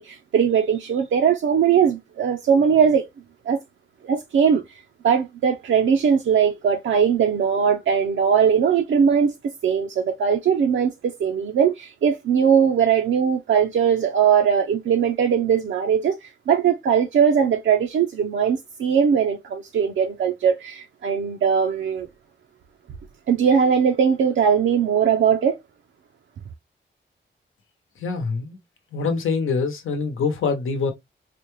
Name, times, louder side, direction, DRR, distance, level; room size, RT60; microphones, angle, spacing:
voice 1, 0.0-3.1 3.5-3.6 4.0-4.6 5.0-9.4 9.6-16.2 16.5-22.1 23.3-25.6, right 7 dB, 75° right, 0.5 m, -20 dB
voice 2, 28.0-28.6 28.9-30.9, left 4 dB, 90° left, 0.9 m, -24 dB
4.1 x 2.2 x 3.1 m
wide cardioid pair, 170°, 20 cm